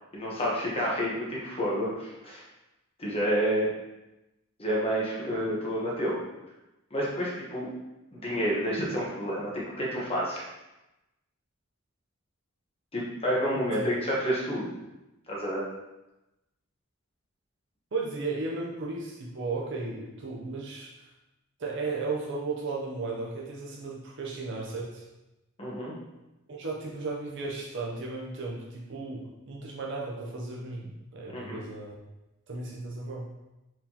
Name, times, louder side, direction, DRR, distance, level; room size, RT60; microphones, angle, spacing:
voice 1, 0.1-2.4 3.0-3.7 4.6-6.2 6.9-7.7 8.1-10.4 12.9-14.7 15.3-15.6 25.6-25.9 31.3-31.6, equal, 25° left, -5 dB, 1.1 m, -29 dB
voice 2, 17.9-20.9 21.6-25.0 26.5-32.0 32.5-33.3, right 3 dB, 55° right, -2 dB, 0.7 m, -35 dB
4.5 x 3.6 x 2.9 m, 0.97 s
head